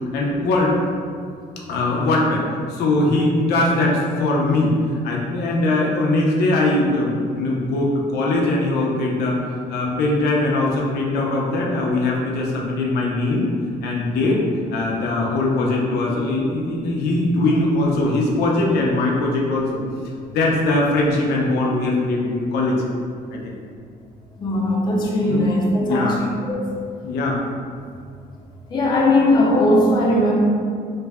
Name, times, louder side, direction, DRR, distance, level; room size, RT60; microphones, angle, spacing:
voice 1, 0.1-0.7 1.7-2.4 2.7-9.4 9.7-13.5 13.8-14.4 14.7-19.8 20.3-22.8 23.3-23.5 25.2-25.4 25.8-26.2 27.0-27.4, left 2 dB, 80° left, -2 dB, 0.6 m, -21 dB
voice 2, 24.4-26.6 28.7-30.3, left 1 dB, 25° left, -3 dB, 0.4 m, -18 dB
3.2 x 2.0 x 3.4 m, 2.2 s
cardioid pair, 165°, 16 cm